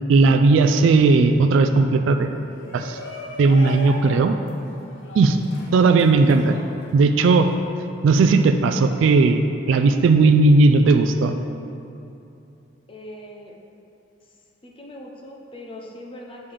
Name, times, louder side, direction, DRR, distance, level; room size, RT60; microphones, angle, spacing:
voice 1, 0.1-2.3 2.7-3.0 3.4-4.3 5.1-5.4 5.7-6.6 6.9-7.5 8.0-11.3, right 3 dB, 70° right, 7 dB, 0.3 m, -16 dB
Shout, 2.4-7.6, left 1 dB, 75° left, 0.9 m, -38 dB
voice 2, 12.9-13.6 14.6-16.5, left 1 dB, 25° left, -1 dB, 0.7 m, -40 dB
7.0 x 5.3 x 3.4 m, 2.7 s
head